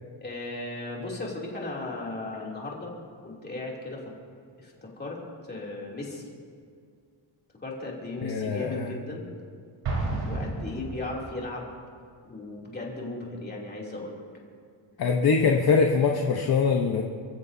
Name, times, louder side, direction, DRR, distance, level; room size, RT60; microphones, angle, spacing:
voice 1, 0.2-2.9 3.2-4.1 4.6-5.2 5.5-6.3 7.6-9.3 10.2-11.7 12.2-14.2, left 2 dB, 20° left, -3 dB, 3.0 m, -36 dB
voice 2, 8.2-8.9 15.0-17.0, left 5 dB, 50° left, 1 dB, 1.1 m, -23 dB
Explosion, 9.8-11.4, right 2 dB, 80° right, 4.6 m, -31 dB
29.5 x 15.0 x 2.8 m, 2.2 s
wide cardioid pair, 180°, 46 cm